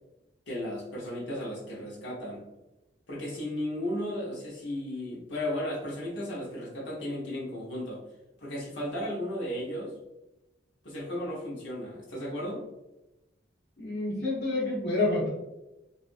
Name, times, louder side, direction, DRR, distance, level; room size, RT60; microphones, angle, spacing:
voice 1, 0.5-2.4 3.1-8.0 8.4-9.9 10.8-12.6, left 1 dB, 85° left, -5 dB, 0.9 m, -35 dB
voice 2, 13.8-15.3, left 2 dB, 60° left, -5 dB, 0.8 m, -28 dB
2.8 x 2.4 x 2.5 m, 0.96 s
head